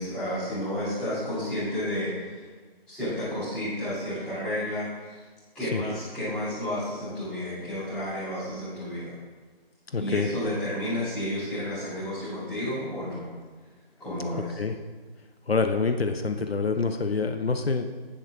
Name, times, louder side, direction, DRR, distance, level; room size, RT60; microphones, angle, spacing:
voice 1, 0.0-2.4 2.9-5.2 5.5-9.2 10.0-13.3 14.0-14.5, left 1 dB, 5° left, -19 dB, 2.8 m, -31 dB
voice 2, 9.9-10.3 14.6-14.7 15.5-17.9, left 4 dB, 75° left, 6 dB, 0.9 m, -26 dB
18.5 x 6.6 x 3.7 m, 1.4 s
figure-of-eight pair, 175°, 30 cm